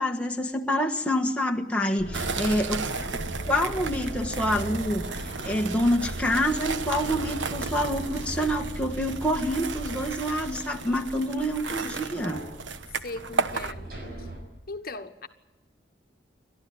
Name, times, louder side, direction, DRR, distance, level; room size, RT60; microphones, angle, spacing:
voice 1, 0.0-2.9 3.5-12.4, equal, 5° left, 1.3 m, -27 dB
sound 1, 2.0-14.4, equal, 55° right, 6.3 m, -38 dB
sound 2, 2.1-13.7, right 4 dB, 90° right, 1.1 m, -34 dB
voice 2, 2.7-3.1 11.6-12.0 13.0-13.9 14.2-14.3 14.7-15.3, left 2 dB, 55° left, 1.2 m, -39 dB
29.0 x 13.0 x 8.7 m
head